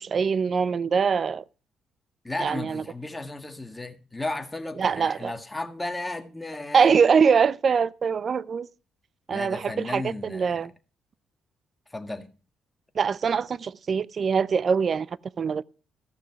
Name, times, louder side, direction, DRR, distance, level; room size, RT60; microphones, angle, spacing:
voice 1, 0.0-1.4 2.4-2.8 4.8-5.3 6.7-8.7 9.3-10.7 13.0-15.1 15.4-15.6, right 6 dB, 45° right, 0.4 m, -23 dB
voice 2, 2.2-6.9 9.3-10.7 11.9-12.3, left 2 dB, 15° left, 1.6 m, -34 dB
14.5 x 6.3 x 5.8 m
cardioid pair, 90°, 0 cm